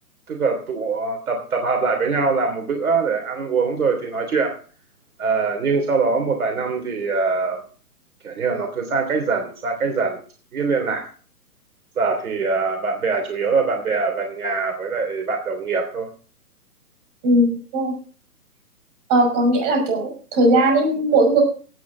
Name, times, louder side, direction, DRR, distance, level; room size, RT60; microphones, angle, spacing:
voice 1, 0.3-4.5 5.2-7.6 8.2-10.2 10.5-11.1 12.0-16.1, right 4 dB, 65° right, 3 dB, 3.2 m, -23 dB
voice 2, 17.2-17.9 19.1-21.4, right 1 dB, 30° right, 2 dB, 6.0 m, -18 dB
17.5 x 8.3 x 3.9 m, 0.40 s
hypercardioid pair, 135°, 46 cm